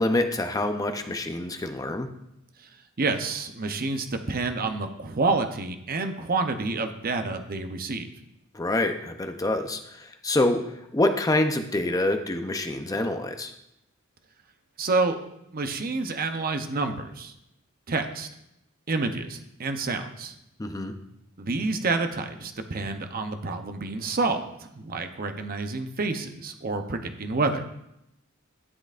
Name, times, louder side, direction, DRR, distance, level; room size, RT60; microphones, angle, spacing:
voice 1, 0.0-2.1 8.5-10.6 10.9-13.5 20.6-20.9, left 2 dB, 15° left, 6 dB, 0.6 m, -26 dB
voice 2, 3.0-8.1 14.8-15.2 15.5-17.3 17.9-18.3 18.9-20.3 21.4-27.6, right 3 dB, 45° right, 6 dB, 0.7 m, -28 dB
12.5 x 7.8 x 2.5 m, 0.82 s
head